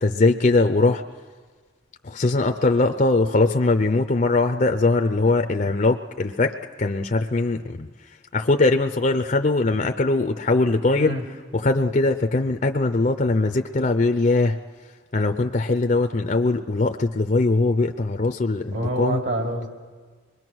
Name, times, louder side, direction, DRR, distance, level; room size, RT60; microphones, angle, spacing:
voice 1, 0.0-1.0 2.0-7.9 8.3-11.1 11.5-14.6 15.1-19.2, left 3 dB, 40° left, 5 dB, 0.5 m, -21 dB
voice 2, 18.7-19.7, right 1 dB, 65° right, 2 dB, 2.9 m, -26 dB
25.5 x 21.5 x 6.2 m, 1.5 s
head